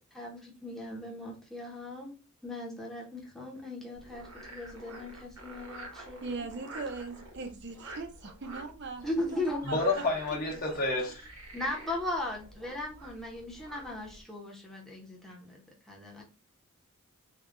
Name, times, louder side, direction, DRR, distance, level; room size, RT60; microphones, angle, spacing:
voice 1, 0.1-2.2 2.4-6.4 9.0-9.7 11.5-15.6 15.9-16.2, left 1 dB, ahead, 0.8 m, -38 dB
Frog, 3.9-14.2, right 1 dB, 70° right, 1.1 m, -48 dB
voice 2, 6.2-9.3 9.7-10.0, right 4 dB, 50° right, 0.6 m, -40 dB
voice 3, 9.6-11.2, left 2 dB, 40° left, 1.1 m, -29 dB
3.6 x 2.3 x 3.7 m
head